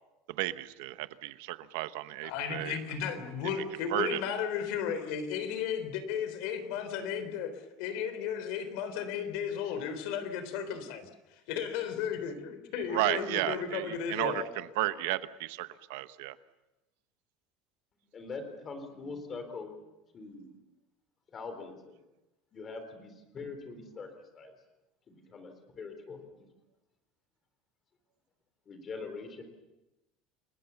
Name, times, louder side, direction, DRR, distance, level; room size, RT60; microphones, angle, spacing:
voice 1, 0.3-2.8 3.9-4.2 12.9-16.4, right 17 dB, 70° right, 13 dB, 1.0 m, -33 dB
voice 2, 2.2-7.5 7.8-11.1 11.5-14.5, left 7 dB, 60° left, 10 dB, 3.7 m, -34 dB
voice 3, 18.1-19.7 20.1-20.5 21.3-22.0 22.5-24.5 25.1-26.4 28.7-29.4, left 4 dB, 20° left, 8 dB, 3.6 m, -43 dB
29.5 x 21.0 x 7.1 m, 0.99 s
cardioid pair, 175°, 0 cm